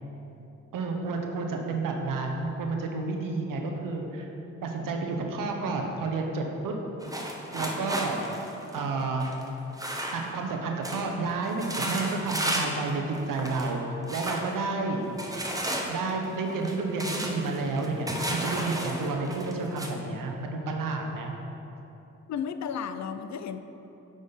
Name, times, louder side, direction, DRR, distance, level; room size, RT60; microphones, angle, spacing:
voice 1, 0.7-4.3 4.6-6.7 7.5-8.2 8.7-9.3 10.1-15.1 15.9-21.3, right 3 dB, 70° right, 2 dB, 0.9 m, -30 dB
sound 1, 7.0-10.5 10.8-11.1 11.4-12.8 13.1-13.7 14.1-14.5 15.2-19.9, right 1 dB, 10° right, 0.9 m, -33 dB
voice 2, 22.3-23.6, left 7 dB, 55° left, 10 dB, 0.4 m, -33 dB
8.8 x 3.8 x 4.0 m, 3.0 s
supercardioid pair, 50°, 34 cm